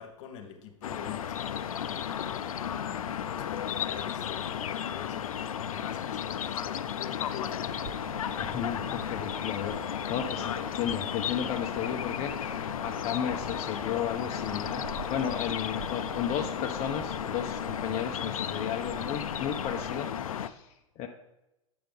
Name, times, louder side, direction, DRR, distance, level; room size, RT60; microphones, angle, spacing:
voice 1, 0.0-1.9 2.3-5.3 5.7-8.1 10.3-10.6, left 7 dB, 55° left, 6 dB, 1.2 m, -45 dB
sound 1, 0.8-20.5, left 9 dB, 75° left, 0.4 m, -34 dB
Bird vocalization bird call bird song, 7.7-20.0, right 5 dB, 40° right, 0.7 m, -46 dB
voice 2, 8.4-21.1, left 9 dB, 35° left, 2 dB, 0.6 m, -34 dB
7.5 x 6.9 x 3.5 m, 0.93 s
hypercardioid pair, 100°, 18 cm